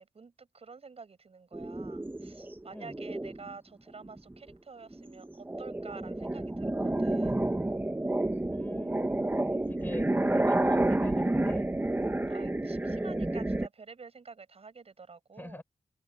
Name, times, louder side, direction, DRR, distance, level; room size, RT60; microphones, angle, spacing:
voice 1, 0.0-7.4 12.3-15.6, right 4 dB, 55° right, 7.8 m, -49 dB
sound 1, 1.5-3.5 4.1-4.5 4.9-13.7, right 1 dB, 15° right, 1.6 m, -30 dB
voice 2, 8.4-11.7 15.4-15.6, left 1 dB, 15° left, 6.8 m, -43 dB
open air
wide cardioid pair, 115°, 12 cm